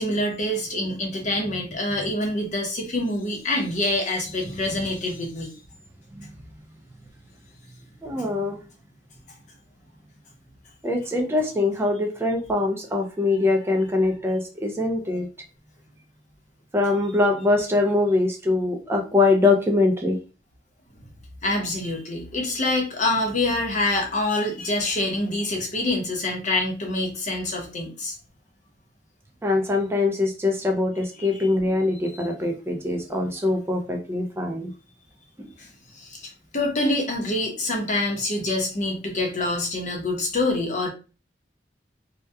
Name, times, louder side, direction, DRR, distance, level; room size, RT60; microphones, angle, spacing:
voice 1, 0.0-5.5 21.4-28.1 31.2-31.5 35.6-35.7 36.0-40.9, left 2 dB, 45° left, 1 dB, 0.7 m, -26 dB
voice 2, 8.0-8.6 10.8-15.3 16.7-20.2 29.4-34.7 35.4-35.5, left 2 dB, 15° right, 2 dB, 0.3 m, -23 dB
2.7 x 2.2 x 2.2 m, 0.33 s
head